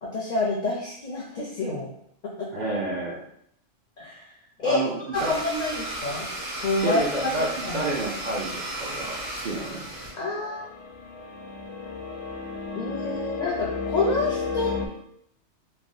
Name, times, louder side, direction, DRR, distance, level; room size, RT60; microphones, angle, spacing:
voice 1, 0.0-1.9 4.0-4.3 4.6-4.8 5.1-6.3 6.6-7.0 7.4-7.8 10.1-10.7 12.8-14.7, left 2 dB, 55° left, -3 dB, 0.5 m, -28 dB
voice 2, 2.5-3.2 4.6-5.3 6.8-9.8, right 2 dB, 60° right, -5 dB, 0.5 m, -29 dB
Domestic sounds home sounds, 5.1-10.1, right 1 dB, 80° right, 1.5 m, -34 dB
sound 1, 10.4-14.9, left 4 dB, 85° left, 1.0 m, -33 dB
3.3 x 2.1 x 2.5 m, 0.71 s
omnidirectional pair, 1.3 m